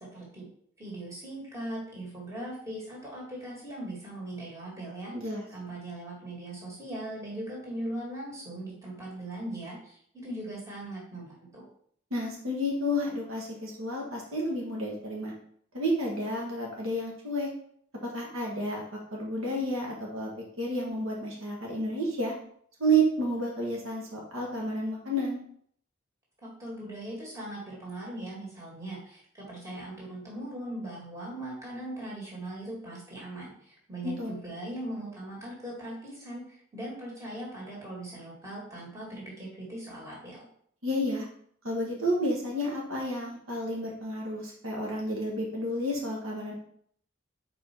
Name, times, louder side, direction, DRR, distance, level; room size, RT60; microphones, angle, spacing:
voice 1, 0.1-0.5 0.8-11.6 26.4-40.5, right 1 dB, 15° right, -5 dB, 2.2 m, -40 dB
voice 2, 5.1-5.4 12.1-15.3 15.7-17.5 18.0-18.8 19.1-20.3 20.6-22.3 22.8-25.4 34.0-34.4 40.8-41.3 41.6-46.5, right 1 dB, 75° right, -2 dB, 1.6 m, -30 dB
4.9 x 4.8 x 4.5 m, 0.64 s
head